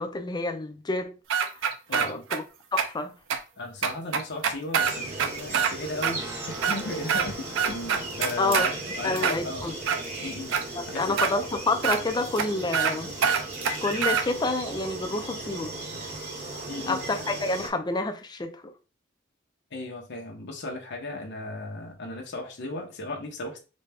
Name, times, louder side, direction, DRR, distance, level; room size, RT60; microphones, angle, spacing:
voice 1, 0.0-1.5 1.9-2.4 2.7-3.1 8.4-9.7 10.7-13.1 13.8-15.7 16.9-18.7, left 2 dB, 20° left, 0.5 m, -29 dB
sound 1, 1.3-2.4 2.8-2.9 3.3-3.4 3.8-5.7 6.0-6.1 6.5-7.3 7.5-8.7 9.2-10.0 10.5-10.6 11.2-11.3 11.8-12.0 12.4-12.5 12.7-12.9 13.2-14.2, right 7 dB, 65° right, 0.5 m, -25 dB
voice 2, 1.9-2.2 3.6-9.7 10.2-11.2 16.7-17.0 19.7-23.6, left 2 dB, 55° left, 0.8 m, -36 dB
sound 2, 4.8-17.7, right 2 dB, 40° right, 1.1 m, -37 dB
Guitar, 6.1-17.6, equal, 15° right, 0.7 m, -48 dB
4.0 x 2.2 x 3.4 m
head